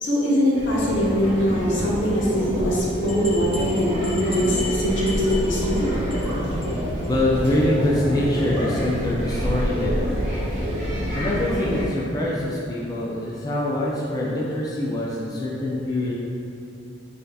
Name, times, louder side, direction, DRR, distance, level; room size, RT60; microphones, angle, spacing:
voice 1, 0.0-5.9, equal, 80° left, -6 dB, 0.9 m, -22 dB
sound 1, 0.5-11.8, equal, 70° right, 1.2 m, -27 dB
sound 2, 3.1-5.8 6.1-6.3 6.6-6.7 7.0-7.1 7.4-7.5, left 2 dB, 30° right, 0.7 m, -36 dB
voice 2, 7.1-10.1 11.1-16.1, left 1 dB, 20° left, -5 dB, 0.4 m, -24 dB
5.3 x 2.7 x 2.3 m, 2.7 s
head